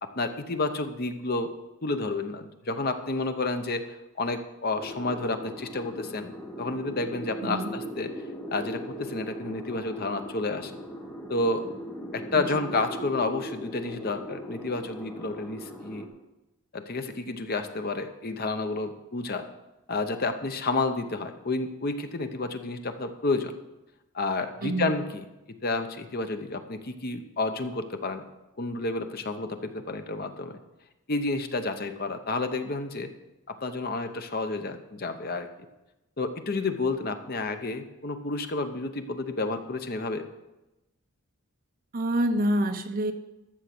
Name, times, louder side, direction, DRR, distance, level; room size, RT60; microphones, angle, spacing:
voice 1, 0.0-1.5 1.8-6.3 6.6-8.1 8.5-10.7 11.3-11.7 12.1-16.1 16.7-19.5 19.9-23.6 24.1-25.2 25.6-28.2 28.6-30.6 31.1-33.1 33.5-35.5 36.2-40.2, left 3 dB, 45° left, 8 dB, 0.8 m, -30 dB
sound 1, 4.8-16.1, equal, 10° left, 1.4 m, -39 dB
voice 2, 7.4-7.7 12.4-12.6 24.6-24.9 41.9-43.1, right 1 dB, 40° right, 8 dB, 0.8 m, -27 dB
13.0 x 6.7 x 6.0 m, 0.98 s
head